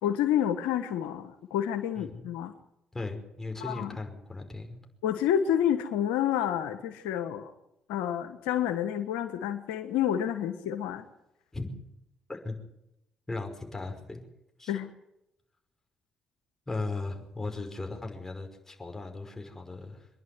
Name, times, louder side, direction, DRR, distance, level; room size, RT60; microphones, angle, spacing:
voice 1, 0.0-2.5 3.6-3.9 5.0-7.5 7.9-11.0 14.7-14.9, left 10 dB, 85° left, 8 dB, 1.3 m, -29 dB
voice 2, 2.0-2.3 2.9-4.8 11.5-11.7 12.3-12.6 13.3-14.2 14.6-14.8 16.7-20.1, left 3 dB, 20° left, 4 dB, 5.4 m, -37 dB
25.5 x 11.0 x 9.6 m, 0.85 s
supercardioid pair, 65°, 2 cm